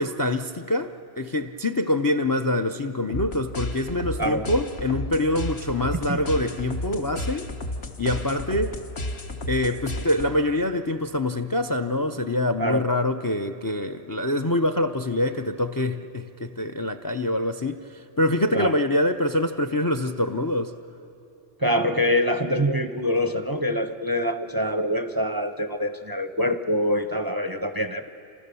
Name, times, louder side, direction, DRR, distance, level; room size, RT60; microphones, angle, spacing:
voice 1, 0.0-7.5 8.0-8.8 9.5-20.7, left 1 dB, 25° left, 8 dB, 0.4 m, -25 dB
sound 1, 3.1-10.5, left 1 dB, 60° left, 1.6 m, -33 dB
voice 2, 21.6-28.1, equal, 25° right, 8 dB, 0.6 m, -25 dB
28.0 x 27.5 x 6.9 m, 2.9 s
omnidirectional pair, 1.2 m